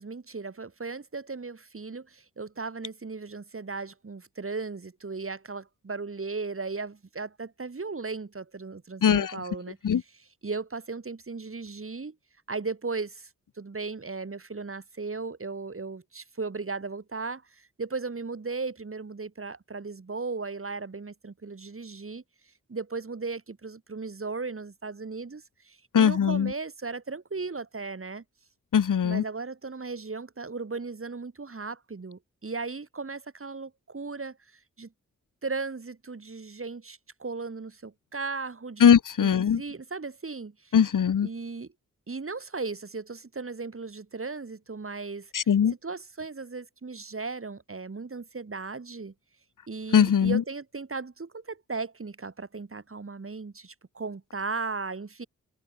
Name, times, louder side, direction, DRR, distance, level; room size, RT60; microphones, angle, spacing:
voice 1, 0.0-9.8 10.4-12.1 12.5-13.3 13.6-22.2 22.7-28.2 29.0-34.9 35.4-38.9 39.2-40.8 41.2-41.7 42.1-45.3 45.8-49.1 49.7-55.3, right 4 dB, 40° right, 2.8 m, -36 dB
voice 2, 9.0-9.4 9.8-10.0 25.9-26.5 28.7-29.2 38.8-39.6 40.7-41.3 45.3-45.7 49.9-50.4, left 8 dB, 70° left, 1.3 m, -20 dB
cardioid pair, 45°, 32 cm